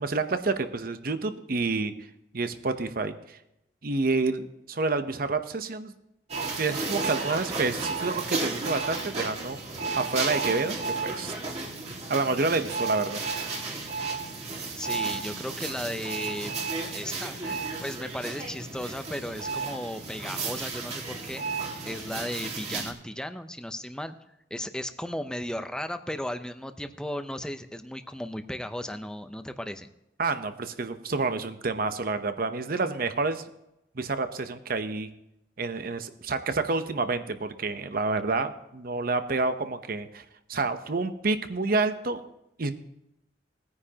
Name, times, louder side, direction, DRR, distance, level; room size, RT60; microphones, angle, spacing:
voice 1, 0.0-1.9 2.3-3.4 3.8-5.9 6.6-9.6 10.0-10.8 11.0-11.3 12.1-13.2 30.2-33.4 33.9-35.1 35.6-40.2 40.5-42.2 42.6-42.7, right 3 dB, 55° right, 9 dB, 0.8 m, -28 dB
sound 1, 6.3-22.9, right 4 dB, 35° right, 1.9 m, -33 dB
voice 2, 14.7-16.6 16.9-24.1 24.5-29.9, left 1 dB, 5° left, 8 dB, 0.7 m, -35 dB
18.5 x 9.7 x 2.9 m, 0.84 s
head